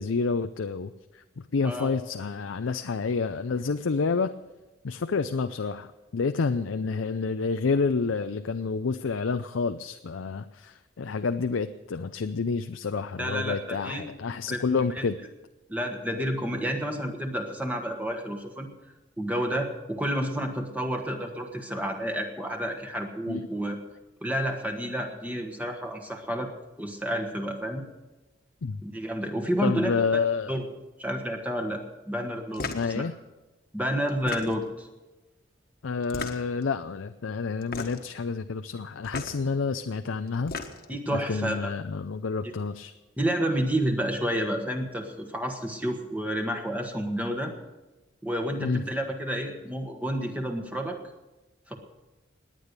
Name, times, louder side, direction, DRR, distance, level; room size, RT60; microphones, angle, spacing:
voice 1, 0.0-4.3 4.8-15.2 23.3-23.4 28.6-28.8 29.6-30.6 32.7-33.1 35.8-40.5 41.1-42.9 48.6-48.8, left 4 dB, 80° left, 10 dB, 0.5 m, -29 dB
voice 2, 1.6-1.9 13.2-14.1 14.5-14.6 15.7-18.7 19.2-23.8 24.2-26.5 26.8-27.8 28.8-29.9 30.5-30.6 31.0-32.7 32.9-33.0 33.7-34.9 40.9-41.7 43.2-47.5 48.2-51.0 51.7-51.8, equal, 10° right, 3 dB, 1.3 m, -30 dB
sound 1, 32.5-32.9 34.1-34.8 36.0-36.6 37.6-38.1 39.0-39.4 40.3-41.0, left 4 dB, 50° left, 1.4 m, -35 dB
18.0 x 10.0 x 6.7 m, 1.1 s
head